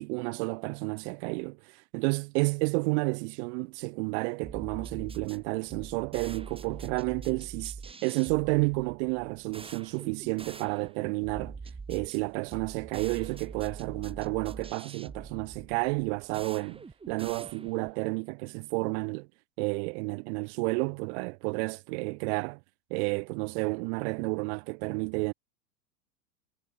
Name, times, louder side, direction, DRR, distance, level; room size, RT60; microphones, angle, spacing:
voice 1, 0.0-11.6 11.9-19.3 19.6-22.6 22.9-25.3, right 32 dB, 50° right, 0.9 m, -31 dB
sound 1, 4.4-18.0, right 4 dB, 10° right, 5.9 m, -44 dB
supercardioid pair, 135°, 43 cm